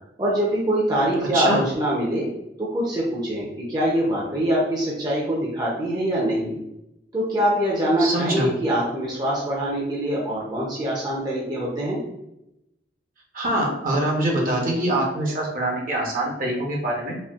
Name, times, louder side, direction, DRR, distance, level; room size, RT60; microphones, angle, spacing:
voice 1, 0.2-2.3 2.6-6.6 7.1-12.0, right 1 dB, 20° right, -5 dB, 0.6 m, -24 dB
voice 2, 1.3-1.6 8.0-8.5 13.3-17.2, right 1 dB, 50° right, -1 dB, 0.8 m, -24 dB
4.2 x 2.2 x 2.4 m, 0.86 s
head